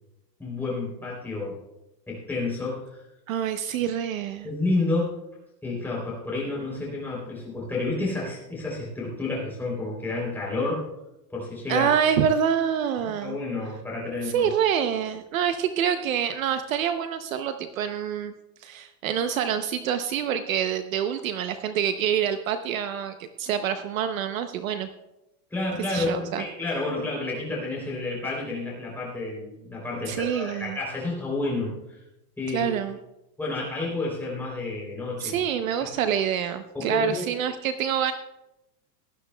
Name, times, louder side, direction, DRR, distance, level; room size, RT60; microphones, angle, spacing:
voice 1, 0.4-1.6 2.1-3.0 4.4-5.1 5.6-10.8 11.3-11.9 13.2-14.5 25.5-32.0 32.4-32.7 33.4-35.4 35.8-35.9 36.7-37.2, left 2 dB, 5° left, -4 dB, 3.1 m, -30 dB
voice 2, 3.3-4.5 11.7-13.4 14.2-18.3 18.6-24.9 25.9-26.4 30.1-30.8 32.5-33.0 35.2-38.1, right 8 dB, 55° right, 9 dB, 0.8 m, -26 dB
18.0 x 11.5 x 2.2 m, 0.92 s
supercardioid pair, 180°, 49 cm